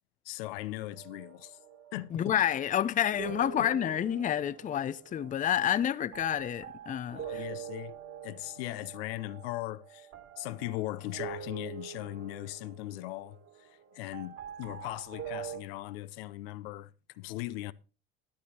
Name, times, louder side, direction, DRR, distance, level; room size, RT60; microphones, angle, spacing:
voice 1, 0.2-1.6 1.9-2.4 3.2-3.3 3.6-3.7 7.1-8.0 8.2-10.1 10.4-17.7, left 17 dB, 70° left, 0.6 m, -39 dB
sound 1, 0.9-15.6, right 9 dB, 50° right, 2.7 m, -45 dB
voice 2, 2.1-7.5, left 10 dB, 25° left, 0.5 m, -29 dB
13.5 x 10.0 x 2.8 m
hypercardioid pair, 70°, 31 cm